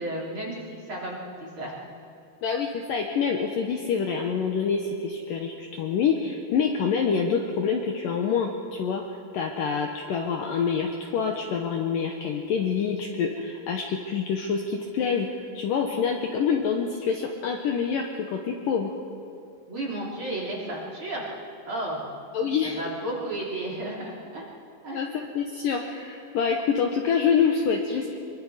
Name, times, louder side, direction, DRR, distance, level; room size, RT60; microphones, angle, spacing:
voice 1, 0.0-1.7 19.7-21.3 21.6-22.0 22.4-24.4 24.8-25.0, right 1 dB, 30° right, -4 dB, 3.5 m, -33 dB
voice 2, 2.4-9.0 9.3-18.9 22.3-22.8 24.9-28.2, left 6 dB, 70° left, 2 dB, 2.3 m, -26 dB
24.5 x 23.0 x 5.0 m, 2.5 s
omnidirectional pair, 5.0 m